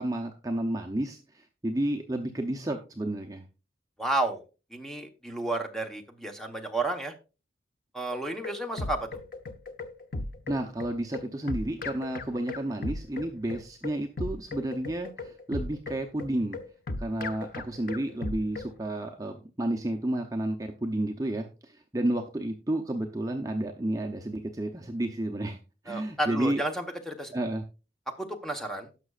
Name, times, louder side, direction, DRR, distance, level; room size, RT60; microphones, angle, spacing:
voice 1, 0.0-3.4 10.5-16.6 17.0-25.6 25.8-26.6 27.3-27.6, right 1 dB, 20° right, 2 dB, 0.7 m, -31 dB
voice 2, 4.0-4.4 4.7-7.1 7.9-9.1 25.9-27.3 28.2-28.9, right 2 dB, ahead, 4 dB, 1.1 m, -31 dB
sound 1, 8.1-18.7, left 2 dB, 50° left, 0.7 m, -37 dB
18.0 x 6.0 x 2.4 m, 0.32 s
head